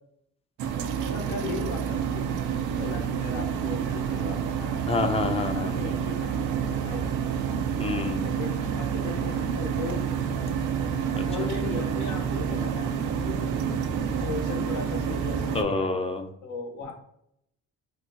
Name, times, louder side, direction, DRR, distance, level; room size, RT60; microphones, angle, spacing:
sound 1, 0.6-15.6, right 7 dB, 90° right, 0.5 m, -28 dB
voice 1, 0.9-4.8 5.5-7.6 8.2-10.0 11.3-13.6 13.9-16.1 16.4-16.9, left 4 dB, 75° left, 3 dB, 0.9 m, -38 dB
voice 2, 4.9-5.7 7.8-8.2 11.2-11.5 15.5-16.3, left 3 dB, 20° left, 5 dB, 0.5 m, -28 dB
2.8 x 2.1 x 3.7 m, 0.74 s
cardioid pair, 90°, 30 cm